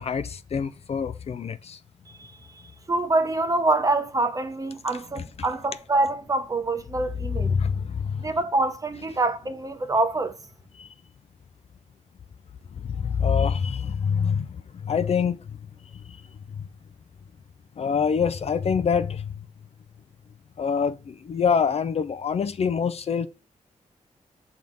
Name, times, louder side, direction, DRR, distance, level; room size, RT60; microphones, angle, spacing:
voice 1, 0.0-1.8 5.2-5.3 7.3-8.3 10.8-10.9 12.8-14.5 14.7-15.4 16.1-16.2 16.5-16.6 17.8-19.3 20.6-23.3, left 6 dB, 55° left, 0.5 m, -25 dB
voice 2, 2.9-7.5 8.2-10.4, right 2 dB, 25° right, 0.8 m, -25 dB
6.2 x 3.6 x 5.2 m
wide cardioid pair, 95°, 13 cm